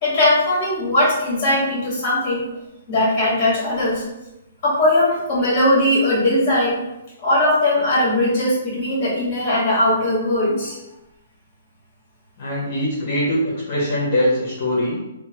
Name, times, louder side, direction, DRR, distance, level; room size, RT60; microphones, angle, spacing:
voice 1, 0.0-2.4 2.9-4.0 4.6-6.8 7.2-10.8, left 1 dB, 25° left, -6 dB, 1.5 m, -19 dB
voice 2, 12.4-13.4 13.7-15.0, left 1 dB, 45° left, -7 dB, 0.8 m, -22 dB
2.9 x 2.1 x 2.8 m, 0.93 s
hypercardioid pair, 165°, 0 cm